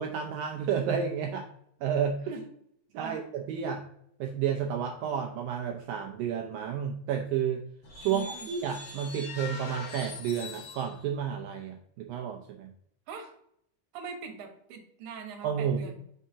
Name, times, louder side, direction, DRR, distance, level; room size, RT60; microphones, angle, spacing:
voice 1, 0.0-1.5 1.8-2.3 2.9-3.8 4.2-7.6 8.0-12.7 15.4-15.9, right 8 dB, 85° right, 2 dB, 2.0 m, -31 dB
sound 1, 7.8-11.0, left 4 dB, 55° left, 1.4 m, -42 dB
voice 2, 8.1-8.5 13.1-13.3 13.9-16.0, right 5 dB, 60° right, 2 dB, 2.3 m, -42 dB
7.3 x 5.6 x 2.7 m, 0.70 s
omnidirectional pair, 4.6 m